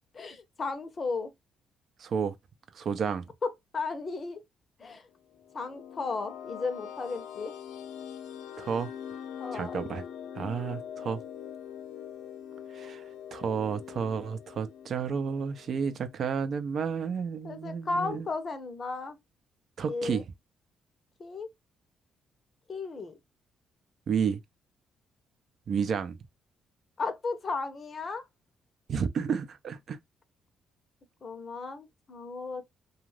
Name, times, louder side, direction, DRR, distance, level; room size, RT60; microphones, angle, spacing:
voice 1, 0.1-1.3 3.7-4.4 4.8-5.0 5.5-7.5 9.4-9.8 17.4-19.2 19.8-20.2 21.2-21.5 22.7-23.1 27.0-28.2 31.2-32.6, left 4 dB, 40° left, 0.7 m, -35 dB
voice 2, 2.0-2.3 2.7-3.3 8.6-8.9 9.5-10.0 10.4-11.2 12.7-13.0 13.3-18.3 19.8-20.2 24.1-24.4 25.7-26.2 28.9-30.0, right 6 dB, 60° right, 0.5 m, -31 dB
sound 1, 5.3-16.2, left 9 dB, 90° left, 0.4 m, -43 dB
2.5 x 2.4 x 3.1 m
cardioid pair, 90°, 0 cm